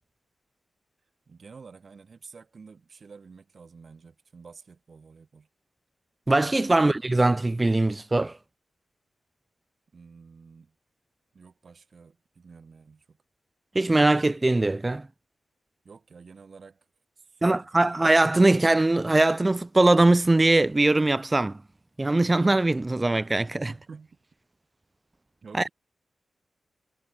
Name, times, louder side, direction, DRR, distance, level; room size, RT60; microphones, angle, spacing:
voice 1, 1.3-5.5 6.6-7.0 9.9-10.7 11.3-13.2 15.8-16.9 17.2-18.0 23.7-24.2 25.4-25.7, right 5 dB, 45° right, 6.7 m, -49 dB
voice 2, 6.3-8.4 13.7-15.1 17.4-21.6 22.0-23.7 25.6-25.7, right 2 dB, 20° right, 1.0 m, -21 dB
wide cardioid pair, 145°, 0 cm